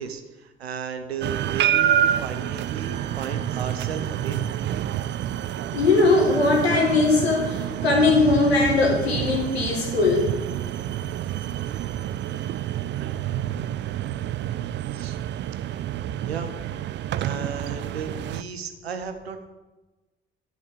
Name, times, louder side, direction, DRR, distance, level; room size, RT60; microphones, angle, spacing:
voice 1, 0.0-4.4 14.9-15.2 16.3-16.6 17.2-19.5, right 6 dB, 85° right, 8 dB, 0.8 m, -34 dB
sound 1, 1.2-18.4, right 11 dB, 40° right, 0.4 m, -28 dB
voice 2, 5.7-10.3, left 3 dB, 80° left, 1 dB, 1.6 m, -20 dB
10.5 x 6.4 x 5.0 m, 1.2 s
figure-of-eight pair, 45°, 31 cm